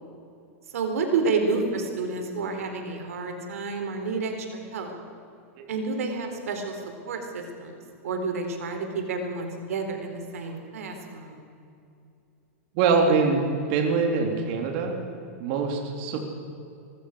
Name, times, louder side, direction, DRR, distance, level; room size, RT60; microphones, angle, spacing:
voice 1, 0.7-4.9 5.7-11.5, right 4 dB, 80° right, 5 dB, 4.1 m, -30 dB
voice 2, 12.7-13.4 13.7-14.9 15.4-16.3, right 4 dB, 50° right, 2 dB, 3.9 m, -23 dB
24.5 x 20.0 x 6.6 m, 2.6 s
hypercardioid pair, 140°, 8 cm